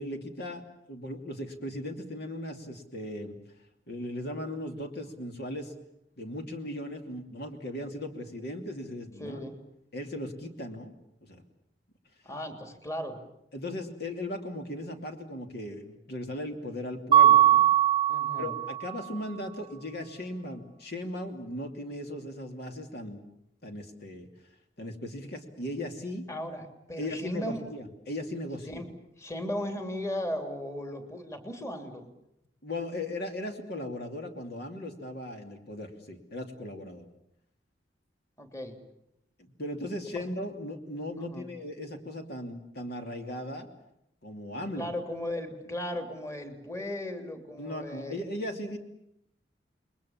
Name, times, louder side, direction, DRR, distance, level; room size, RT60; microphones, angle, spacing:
voice 1, 0.0-3.4 3.9-5.7 6.2-9.4 9.9-10.9 11.2-11.4 13.5-17.7 18.4-23.2 23.6-24.3 24.8-26.3 27.0-28.8 32.6-37.1 39.4-43.7 44.2-44.9 47.6-48.8, left 1 dB, 60° left, 4 dB, 2.8 m, -37 dB
voice 2, 9.2-9.6 12.2-13.2 18.1-18.5 26.3-27.6 28.7-28.9 29.2-32.1 38.4-38.8 40.1-40.2 41.2-41.5 44.7-48.2, left 1 dB, 15° left, 5 dB, 3.0 m, -36 dB
Mallet percussion, 17.1-18.9, right 11 dB, 30° right, 1.0 m, -20 dB
29.0 x 22.0 x 7.3 m, 0.79 s
head